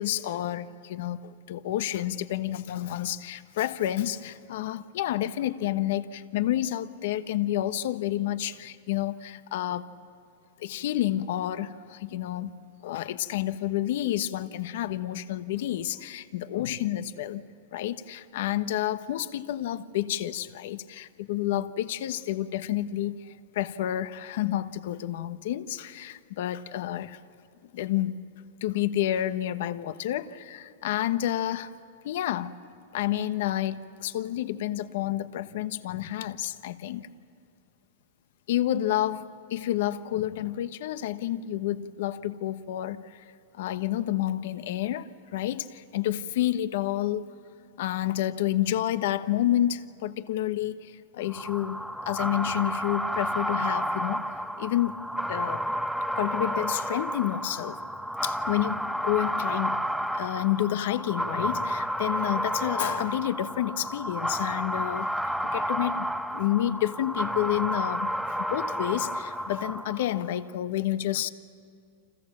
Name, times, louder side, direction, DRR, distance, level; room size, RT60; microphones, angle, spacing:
voice 1, 0.0-9.9 10.6-12.6 12.8-17.4 17.7-27.2 27.7-28.2 28.6-31.7 32.0-32.5 32.9-37.1 38.5-43.2 43.5-47.3 47.8-54.3 54.6-55.0 55.3-55.7 56.2-57.8 58.2-59.8 60.1-65.1 65.4-66.1 66.3-71.3, left 13 dB, 65° left, 12 dB, 1.1 m, -29 dB
sound 1, 51.3-70.2, equal, ahead, 0.9 m, -31 dB
29.5 x 27.0 x 7.5 m, 2.3 s
supercardioid pair, 145°, 0 cm